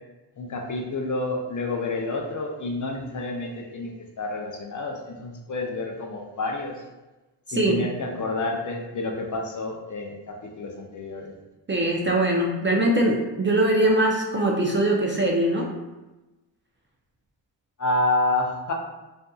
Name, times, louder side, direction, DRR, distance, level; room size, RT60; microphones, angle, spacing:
voice 1, 0.4-3.9 4.2-6.8 7.5-11.3 17.8-18.7, left 2 dB, 45° left, 1 dB, 0.5 m, -29 dB
voice 2, 7.5-7.8 11.7-15.7, right 1 dB, 25° right, -2 dB, 0.4 m, -22 dB
2.6 x 2.5 x 2.3 m, 1.1 s
cardioid pair, 65°, 46 cm